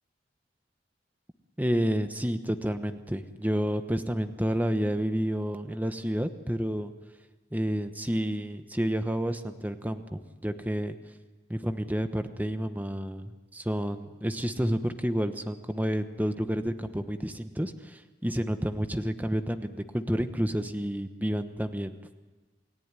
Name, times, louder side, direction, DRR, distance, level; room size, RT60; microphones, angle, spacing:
voice 1, 1.6-6.9 7.5-11.0 11.5-22.1, equal, 10° right, 8 dB, 1.1 m, -30 dB
29.0 x 17.5 x 9.8 m, 1.3 s
head